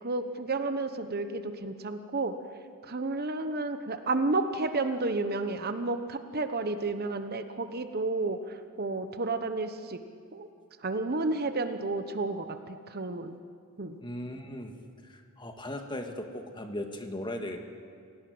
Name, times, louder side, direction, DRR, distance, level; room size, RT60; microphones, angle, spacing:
voice 1, 0.0-2.3 2.8-10.0 10.3-10.5 10.8-13.4 13.8-14.0, right 3 dB, 45° right, 9 dB, 1.1 m, -31 dB
voice 2, 14.0-14.8 15.0-17.6, left 1 dB, 20° left, 5 dB, 1.8 m, -38 dB
27.5 x 17.5 x 7.9 m, 2.3 s
head